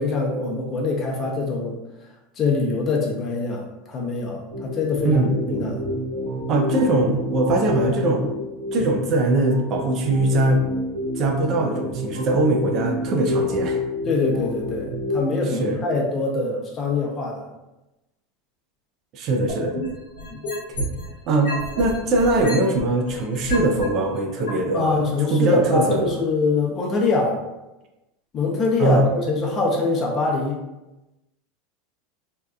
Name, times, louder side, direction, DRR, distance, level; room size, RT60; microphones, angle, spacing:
voice 1, 0.0-1.8 2.4-5.8 14.0-17.5 20.3-20.4 24.7-27.4 28.3-30.6, left 3 dB, 40° left, -1 dB, 0.7 m, -24 dB
sound 1, 4.5-15.5, left 1 dB, 75° right, 0.9 m, -29 dB
voice 2, 5.0-5.8 6.5-8.3 8.7-10.6 11.2-13.8 15.5-15.8 19.1-19.7 20.8-20.9 21.3-26.1 28.8-29.1, right 2 dB, 50° right, 3 dB, 0.4 m, -21 dB
sound 2, 19.5-21.1 21.4-23.8 24.5-24.6, left 1 dB, 75° left, 0.8 m, -30 dB
2.7 x 2.2 x 2.2 m, 1.0 s
hypercardioid pair, 90°, 0 cm